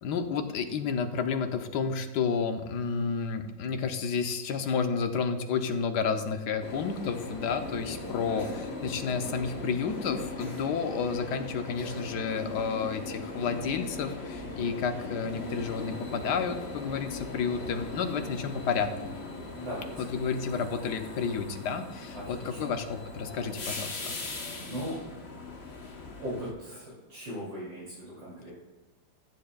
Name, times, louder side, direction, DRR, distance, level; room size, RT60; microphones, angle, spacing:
voice 1, 0.0-19.2 20.0-24.2, left 5 dB, 65° left, 7 dB, 1.4 m, -31 dB
sound 1, 6.6-26.5, left 3 dB, 35° left, 1.3 m, -39 dB
voice 2, 19.5-19.9 22.1-22.7 24.7-25.0 26.2-28.5, equal, 65° right, -8 dB, 3.6 m, -38 dB
15.0 x 7.6 x 2.4 m, 1.2 s
omnidirectional pair, 2.1 m